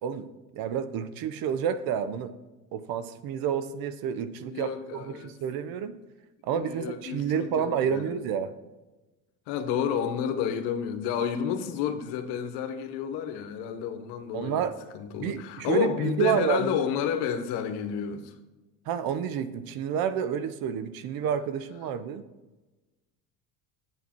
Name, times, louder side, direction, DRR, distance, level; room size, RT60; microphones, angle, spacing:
voice 1, 0.0-2.3 2.7-6.0 6.4-8.5 14.3-14.8 15.2-16.8 18.9-22.2, right 8 dB, 55° right, 0.8 m, -29 dB
voice 2, 4.5-5.3 6.5-8.1 9.5-14.6 14.9-18.3, left 8 dB, 65° left, 1.1 m, -30 dB
7.9 x 7.2 x 4.5 m
hypercardioid pair, 85°, 42 cm